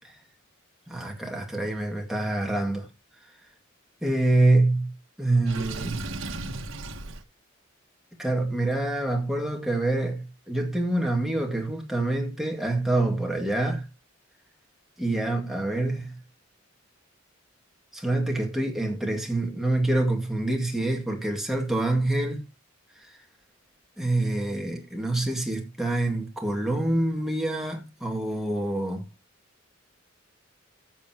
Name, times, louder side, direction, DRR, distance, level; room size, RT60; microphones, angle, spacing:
voice 1, 0.9-2.9 4.0-4.9 5.2-6.0 8.2-13.9 15.0-16.1 17.9-22.4 24.0-29.1, right 2 dB, ahead, 2.2 m, -26 dB
Water / Sink (filling or washing), 5.5-7.2, right 2 dB, 70° right, 1.3 m, -35 dB
13.5 x 7.3 x 2.9 m
head